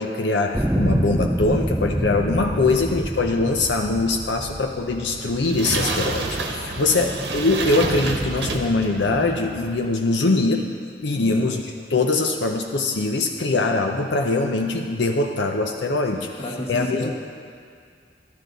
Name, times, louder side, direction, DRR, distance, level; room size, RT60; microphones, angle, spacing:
voice 1, 0.0-10.7 11.0-11.6 11.9-16.3 16.7-17.1, left 3 dB, 85° left, 3 dB, 0.6 m, -22 dB
sound 1, 0.5-5.8 6.5-6.6, right 1 dB, 5° right, 0.3 m, -26 dB
sound 2, 4.9-9.9, right 2 dB, 70° right, 1.0 m, -28 dB
voice 2, 11.2-11.5 13.3-13.7 16.1-17.1, equal, 35° left, -1 dB, 1.4 m, -33 dB
13.5 x 11.0 x 4.0 m, 2.3 s
head